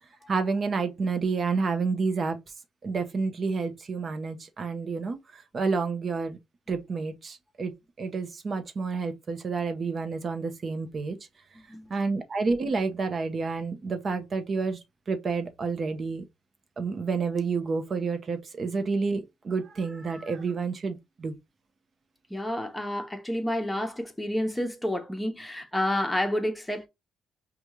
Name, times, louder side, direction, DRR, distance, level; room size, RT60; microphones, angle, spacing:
voice 1, 0.3-2.4 2.8-6.4 6.7-7.7 8.0-11.2 11.9-14.8 15.1-16.2 16.8-21.3, right 4 dB, 45° right, 0.8 m, -29 dB
voice 2, 22.3-26.9, left 1 dB, 10° left, 1.0 m, -29 dB
5.1 x 2.4 x 3.1 m
cardioid pair, 90°, 0 cm